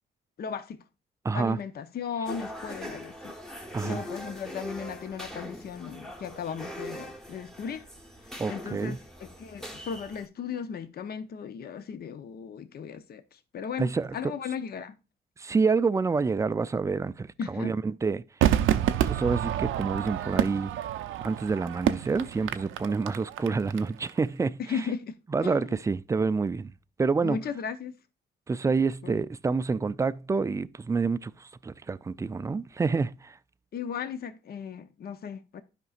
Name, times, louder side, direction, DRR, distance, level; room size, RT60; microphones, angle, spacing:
voice 1, 0.4-0.8 1.3-3.3 3.8-7.9 8.5-15.0 17.4-17.7 24.6-25.1 25.4-25.8 27.2-27.9 29.0-29.2 33.7-35.6, left 7 dB, 50° left, 0.7 m, -36 dB
voice 2, 1.2-1.6 3.7-4.0 8.4-9.0 13.8-14.3 15.4-18.2 19.0-20.7 21.2-24.6 25.3-26.7 27.0-27.4 28.5-33.4, right 4 dB, 15° right, 0.3 m, -28 dB
sound 1, 2.3-10.3, equal, 5° left, 1.0 m, -41 dB
Crowd / Fireworks, 18.4-23.8 24.1-24.2, right 11 dB, 80° right, 0.5 m, -28 dB
11.5 x 5.2 x 2.4 m
cardioid pair, 90°, 20 cm